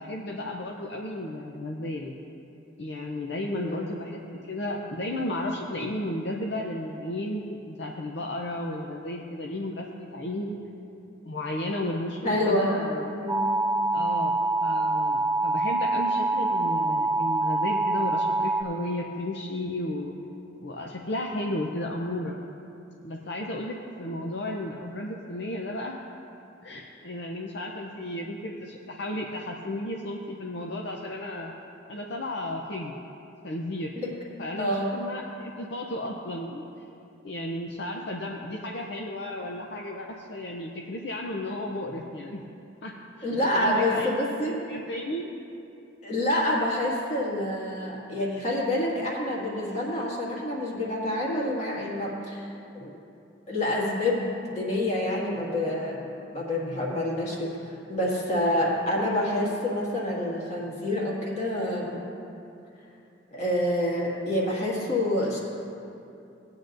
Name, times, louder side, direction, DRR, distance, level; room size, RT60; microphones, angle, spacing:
voice 1, 0.0-2.1 2.8-4.2 4.5-10.6 11.2-13.1 13.9-14.3 14.6-20.1 20.6-22.4 23.0-26.0 26.6-31.5 31.9-32.9 33.4-33.9 34.4-36.6 37.2-42.4 42.8-44.1 44.7-45.3, left 1 dB, 65° left, 0 dB, 0.6 m, -33 dB
voice 2, 3.5-4.0 12.2-12.8 13.1-13.6 34.0-34.2 34.6-34.9 43.2-44.5 46.0-52.5 52.7-52.9 53.5-62.0 63.3-65.4, left 1 dB, 35° left, -4 dB, 1.9 m, -27 dB
sound 1, 13.3-18.6, right 2 dB, 10° right, 0.3 m, -25 dB
18.0 x 8.8 x 2.6 m, 2.7 s
head